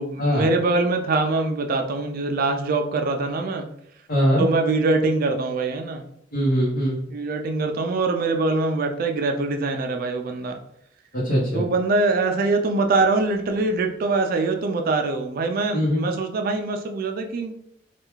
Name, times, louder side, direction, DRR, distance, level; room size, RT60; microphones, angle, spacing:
voice 1, 0.0-3.7 4.4-6.0 7.1-10.6 11.5-17.5, right 3 dB, 50° right, 5 dB, 0.4 m, -23 dB
voice 2, 4.1-4.4 6.3-7.0 11.1-11.6 15.7-16.0, equal, 55° left, -7 dB, 0.9 m, -21 dB
3.4 x 2.3 x 3.0 m, 0.73 s
head